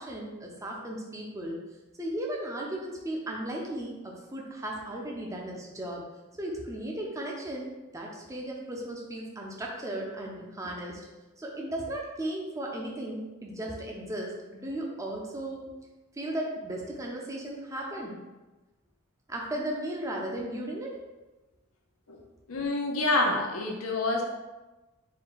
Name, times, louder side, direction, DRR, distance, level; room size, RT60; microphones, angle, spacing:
voice 1, 0.0-1.6 2.0-6.1 6.3-11.0 11.4-15.7 16.1-18.2 19.3-21.0, right 1 dB, 15° right, -2 dB, 0.5 m, -36 dB
voice 2, 22.5-24.2, left 2 dB, 85° left, 1 dB, 0.7 m, -27 dB
4.4 x 2.2 x 3.9 m, 1.1 s
head